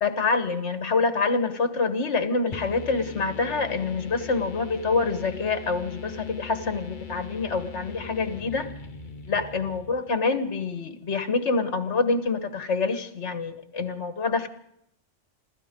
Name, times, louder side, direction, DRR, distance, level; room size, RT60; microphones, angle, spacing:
voice 1, 0.0-8.7 9.3-14.5, left 4 dB, 70° left, 9 dB, 1.7 m, -26 dB
sound 1, 2.5-10.2, left 5 dB, 45° left, 1.2 m, -40 dB
27.0 x 14.0 x 3.8 m, 0.72 s
omnidirectional pair, 1.2 m